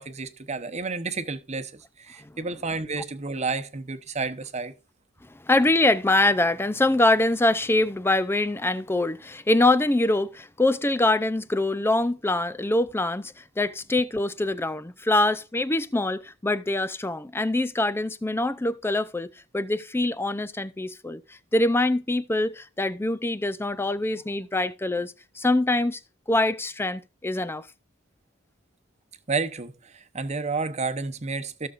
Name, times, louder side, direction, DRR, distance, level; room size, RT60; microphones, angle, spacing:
voice 1, 0.0-4.7 29.3-31.7, right 4 dB, 35° right, 0.9 m, -31 dB
voice 2, 5.5-21.2 21.5-26.0 26.3-27.7, left 2 dB, 10° left, 0.5 m, -24 dB
16.0 x 6.6 x 2.5 m
head